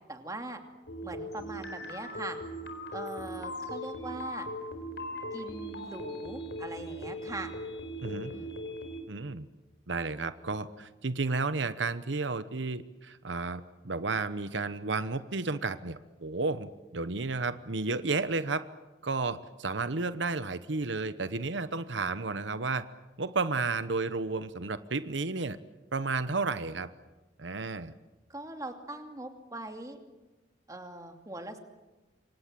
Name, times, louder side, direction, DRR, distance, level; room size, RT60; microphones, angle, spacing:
voice 1, 0.1-0.6 1.0-2.4 2.9-4.5 5.3-7.5 8.1-8.6 28.3-30.0 30.7-31.6, right 2 dB, 20° right, 5 dB, 2.6 m, -41 dB
sound 1, 0.9-9.0, equal, 70° left, 4.4 m, -39 dB
voice 2, 8.0-8.3 9.1-9.5 9.9-18.7 19.0-22.8 23.2-25.6 25.9-26.9 27.4-27.9, right 3 dB, 85° right, 13 dB, 1.0 m, -32 dB
28.0 x 25.0 x 7.7 m, 1.1 s
head